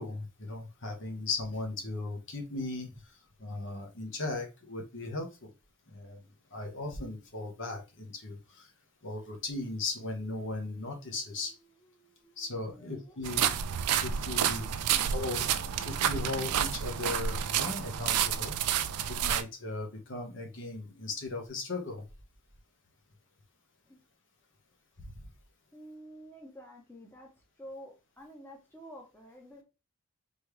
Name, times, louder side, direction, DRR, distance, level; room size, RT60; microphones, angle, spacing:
voice 1, 0.0-5.5 5.9-6.2 6.5-8.7 9.0-11.5 12.4-13.5 14.0-14.7 15.1-15.5 15.8-18.6 19.1-22.0, left 2 dB, 55° left, 3 dB, 1.2 m, -37 dB
voice 2, 10.9-14.1 23.8-24.0 25.7-29.6, equal, 10° left, 0 dB, 1.0 m, -52 dB
sound 1, 13.2-19.4, right 9 dB, 85° right, 0.4 m, -30 dB
4.3 x 3.4 x 3.1 m, 0.28 s
head